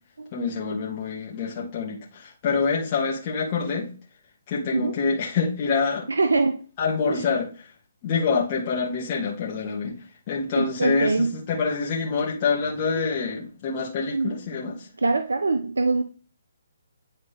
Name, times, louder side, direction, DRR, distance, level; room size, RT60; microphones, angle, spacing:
voice 1, 0.3-3.9 4.5-6.1 6.8-7.5 8.0-9.9 10.3-14.8, left 5 dB, 35° left, 1.9 m, -26 dB
voice 2, 6.1-6.6 7.1-7.2 10.5-11.3 12.9-13.1 14.1-14.3 15.0-16.0, right 3 dB, 85° right, 0.7 m, -23 dB
9.7 x 4.0 x 3.4 m
hypercardioid pair, 145°, 0 cm